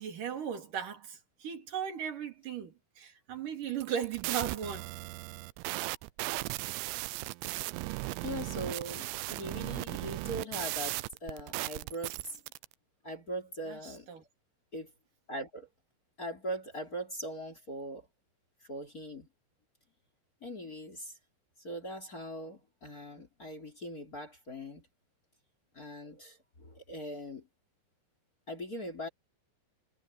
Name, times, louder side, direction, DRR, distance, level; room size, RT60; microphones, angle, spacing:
voice 1, 0.0-4.9 13.7-14.2, right 8 dB, 50° right, 4.4 m, -37 dB
sound 1, 3.7-12.7, right 21 dB, 90° right, 2.9 m, -37 dB
voice 2, 8.2-12.4 13.0-14.1 14.7-14.9 15.3-15.7 16.2-18.1 18.6-19.3 20.4-21.2 21.6-24.9 25.7-27.5 28.5-29.1, equal, 25° left, 3.0 m, -41 dB
omnidirectional pair, 5.1 m